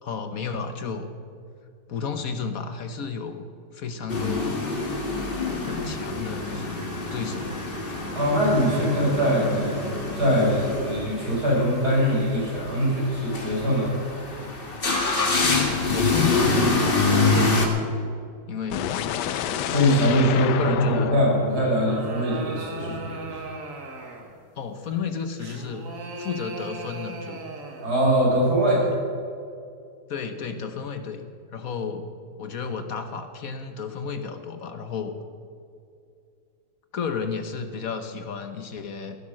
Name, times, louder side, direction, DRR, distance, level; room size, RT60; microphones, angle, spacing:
voice 1, 0.0-1.1 1.9-3.4 3.7-4.6 5.6-7.5 15.4-18.0 18.5-19.0 20.3-21.1 24.6-25.9 26.2-27.4 30.1-31.3 31.5-32.1 32.4-35.1 36.9-39.2, left 6 dB, 60° left, 7 dB, 1.3 m, -32 dB
sound 1, 4.1-17.7, left 3 dB, 35° left, 1.8 m, -26 dB
voice 2, 8.2-13.9 19.7-23.3 27.8-28.9, equal, 70° right, -4 dB, 5.6 m, -22 dB
sound 2, 18.7-22.7, left 9 dB, 80° left, 1.3 m, -30 dB
sound 3, 21.6-24.4 25.4-28.0, right 2 dB, 50° right, 2.0 m, -37 dB
15.5 x 11.5 x 6.3 m, 2.4 s
omnidirectional pair, 1.8 m